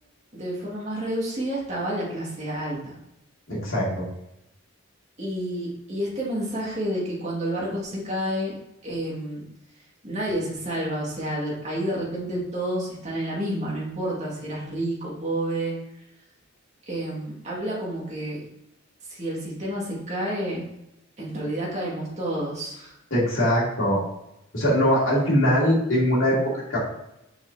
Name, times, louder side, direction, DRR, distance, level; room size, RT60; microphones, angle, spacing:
voice 1, 0.3-2.9 5.2-8.6 8.8-9.4 10.0-15.8 16.9-18.5 19.1-20.6 21.2-22.9, right 1 dB, 35° right, -4 dB, 2.0 m, -29 dB
voice 2, 3.5-4.1 23.1-24.0 24.5-26.4 26.7-26.8, equal, 80° left, -6 dB, 2.5 m, -21 dB
6.6 x 5.5 x 2.8 m, 0.84 s
head